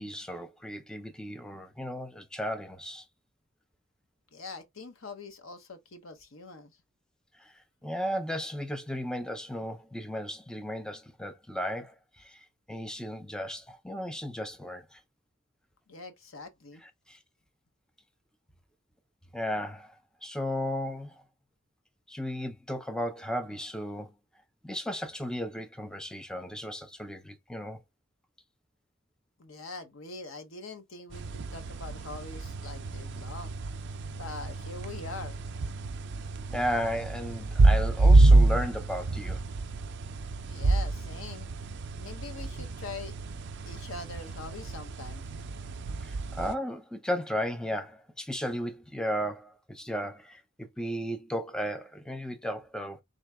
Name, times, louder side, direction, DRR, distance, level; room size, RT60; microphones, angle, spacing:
voice 1, 0.0-3.1 7.4-7.5 7.8-15.0 16.8-17.2 19.3-20.0 20.2-21.2 22.1-24.1 24.6-27.8 36.5-39.4 46.0-53.0, equal, 5° left, 0.5 m, -35 dB
voice 2, 4.3-6.7 15.9-16.8 29.4-33.6 34.1-35.4 40.4-41.5 42.0-43.1 43.6-45.2, left 3 dB, 80° left, 1.0 m, -43 dB
sound 1, 31.1-46.6, right 2 dB, 60° right, 0.4 m, -27 dB
3.8 x 2.9 x 3.4 m
head